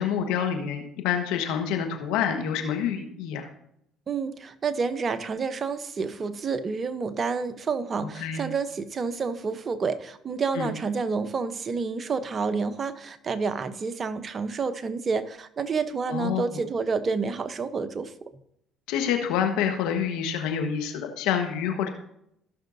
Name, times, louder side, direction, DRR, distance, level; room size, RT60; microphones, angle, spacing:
voice 1, 0.0-3.5 8.0-8.4 10.5-10.7 16.1-16.4 18.9-21.9, left 8 dB, 80° left, 5 dB, 1.4 m, -27 dB
voice 2, 4.1-18.3, right 5 dB, 40° right, 11 dB, 0.8 m, -29 dB
16.0 x 6.3 x 2.7 m, 0.75 s
supercardioid pair, 70°, 0 cm